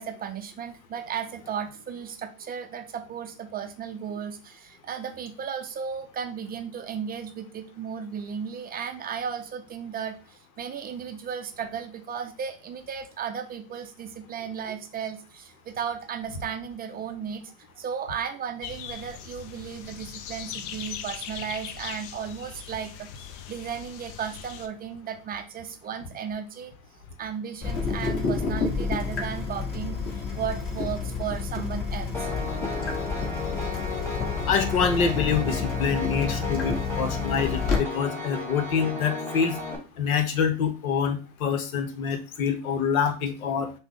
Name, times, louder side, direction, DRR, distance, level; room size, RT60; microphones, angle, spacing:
voice 1, 0.0-17.5 17.8-26.7 27.2-32.3, right 7 dB, 25° right, 6 dB, 0.4 m, -35 dB
sound 1, 18.6-24.7, left 9 dB, 60° left, 0.6 m, -40 dB
Water tap faucet / Drip, 27.6-37.8, left 5 dB, 35° left, 1.5 m, -30 dB
Piano, 32.1-39.8, left 2 dB, 5° left, 1.3 m, -34 dB
voice 2, 34.5-39.5 40.0-43.7, left 6 dB, 85° left, 8 dB, 0.8 m, -26 dB
5.7 x 2.1 x 3.5 m, 0.34 s
hypercardioid pair, 95°, 41 cm